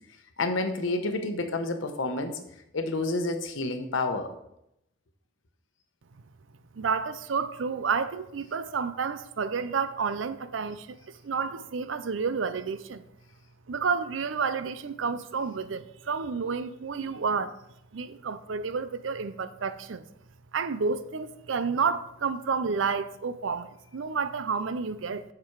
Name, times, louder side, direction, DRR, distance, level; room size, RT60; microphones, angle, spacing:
voice 1, 0.4-2.4 2.7-4.3, left 2 dB, 85° left, 1.0 m, -29 dB
voice 2, 6.7-11.0 11.2-13.0 13.7-17.5 17.9-20.0 20.5-25.2, right 5 dB, 85° right, 0.5 m, -30 dB
7.4 x 6.0 x 4.7 m
head